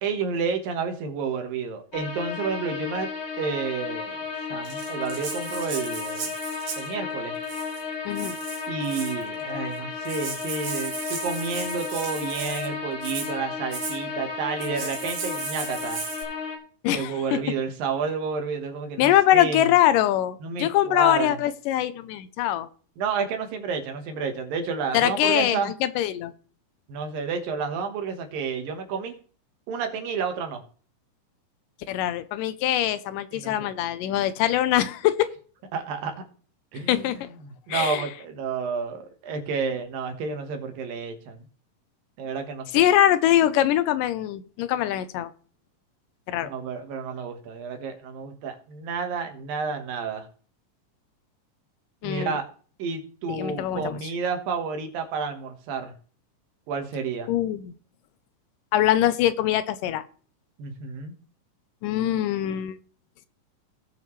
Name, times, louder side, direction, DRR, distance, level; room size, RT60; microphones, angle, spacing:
voice 1, 0.0-3.1 3.4-4.2 4.5-6.3 6.8-7.4 8.7-16.0 16.9-19.7 20.4-21.4 23.0-25.7 26.9-29.2 29.7-30.6 33.3-33.7 35.7-36.2 36.7-37.1 37.4-41.4 42.2-42.8 46.5-50.3 52.0-52.5 52.8-55.9 56.7-57.3 60.6-61.1, right 5 dB, 85° right, 5 dB, 3.1 m, -30 dB
sound 1, 1.9-16.6, left 5 dB, 50° left, 2.5 m, -33 dB
Rattle (instrument), 4.7-6.9 7.4-7.8 8.2-9.2 9.8-9.9 10.1-12.7 13.0-13.3 13.7-14.0 14.6-16.2, right 5 dB, 70° right, 3.6 m, -36 dB
voice 2, 8.1-8.4 16.8-17.4 19.0-22.7 24.9-26.3 31.9-35.3 36.9-37.3 37.7-38.0 42.7-45.3 46.3-46.5 52.0-52.4 53.3-54.0 57.3-57.7 58.7-60.0 61.8-62.8, left 12 dB, 85° left, 13 dB, 2.2 m, -23 dB
18.0 x 6.0 x 3.1 m, 0.42 s
omnidirectional pair, 3.9 m